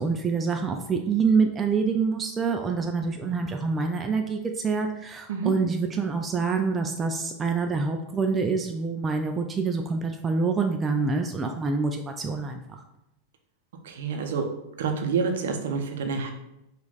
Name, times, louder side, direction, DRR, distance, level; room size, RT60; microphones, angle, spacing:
voice 1, 0.0-12.8, right 4 dB, 20° right, 4 dB, 0.4 m, -26 dB
voice 2, 13.8-14.4 14.8-16.3, right 5 dB, 60° right, 4 dB, 0.6 m, -28 dB
4.9 x 2.5 x 3.9 m, 0.87 s
figure-of-eight pair, 90°, 0 cm